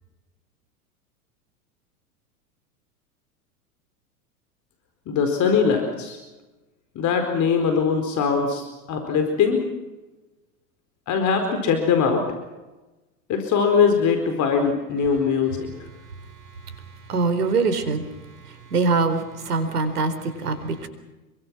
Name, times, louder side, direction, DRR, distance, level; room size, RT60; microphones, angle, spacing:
voice 1, 5.1-6.2 6.9-9.6 11.1-12.2 13.3-15.7, left 6 dB, 40° left, 4.5 m, -21 dB
voice 2, 16.6-18.1 18.4-20.9, right 4 dB, 85° right, 4.3 m, -24 dB
28.0 x 23.5 x 6.2 m
hypercardioid pair, 100°, 45 cm